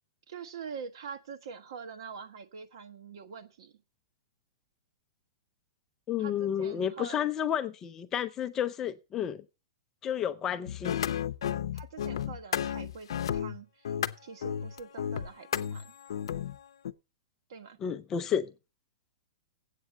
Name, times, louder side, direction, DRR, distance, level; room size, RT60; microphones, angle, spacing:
voice 1, 0.3-3.7 6.2-7.3 11.7-14.0 14.2-15.9 17.5-17.8, right 6 dB, 65° right, 1.3 m, -44 dB
voice 2, 6.1-9.4 10.0-11.0 17.8-18.5, left 9 dB, 15° left, 0.5 m, -31 dB
sound 1, 10.7-16.9, left 9 dB, 75° left, 0.6 m, -33 dB
8.2 x 6.8 x 7.8 m
supercardioid pair, 170°, 3 cm